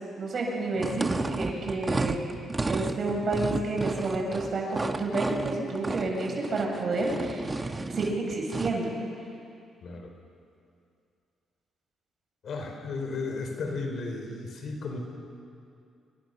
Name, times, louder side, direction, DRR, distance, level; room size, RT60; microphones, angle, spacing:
voice 1, 0.2-2.3 2.7-7.4 7.9-8.8, right 2 dB, 50° right, -1 dB, 7.6 m, -30 dB
sound 1, 0.7-8.8, right 3 dB, 20° right, 1.3 m, -32 dB
voice 2, 12.4-15.0, left 3 dB, 60° left, 3 dB, 4.6 m, -34 dB
26.0 x 24.0 x 7.0 m, 2.5 s
cardioid pair, 90°, 0 cm